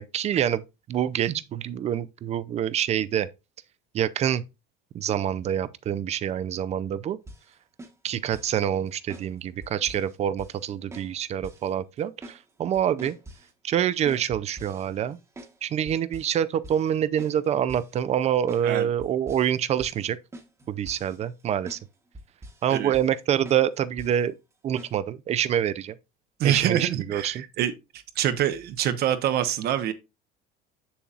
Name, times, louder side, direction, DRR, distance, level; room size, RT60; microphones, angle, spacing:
voice 1, 0.0-3.3 3.9-4.4 4.9-7.2 8.0-13.2 13.6-15.2 15.6-20.2 20.7-21.8 22.6-24.3 24.6-26.0 26.4-27.4, right 10 dB, 35° right, 0.5 m, -26 dB
sound 1, 7.3-7.5 7.8-8.6 9.1-9.3 9.6-10.1 10.4-10.6 10.9-11.1 11.4-11.7 12.0-12.4 12.7-13.5 14.1-15.6 15.9-16.4 16.6-16.9 17.2-17.4 17.7-17.9 18.5-18.7 19.0-19.5 19.8-20.0 20.3-21.4 21.7-21.8 22.1-22.7 22.9-23.2 23.4-23.7 24.0-24.2 24.8-24.9, right 1 dB, 15° right, 1.1 m, -44 dB
voice 2, 26.4-27.7 28.2-29.9, right 10 dB, 55° right, 0.9 m, -25 dB
7.4 x 7.0 x 2.4 m
cardioid pair, 145°, 20 cm